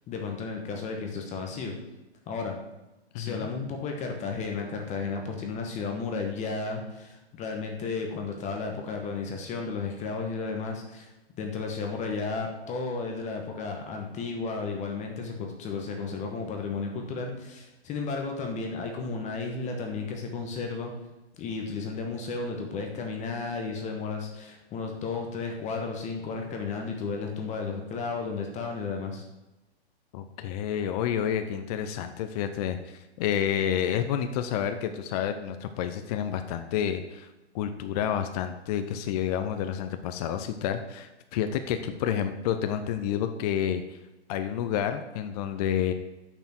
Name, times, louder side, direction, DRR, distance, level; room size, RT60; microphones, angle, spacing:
voice 1, 0.1-1.7 2.3-2.5 3.2-20.9 21.3-29.2, left 4 dB, 20° left, 2 dB, 1.2 m, -33 dB
voice 2, 3.1-3.5 30.1-37.3 37.5-43.8 44.3-45.9, left 9 dB, 35° left, 8 dB, 0.6 m, -29 dB
6.7 x 6.0 x 7.6 m, 1.0 s
hypercardioid pair, 140°, 33 cm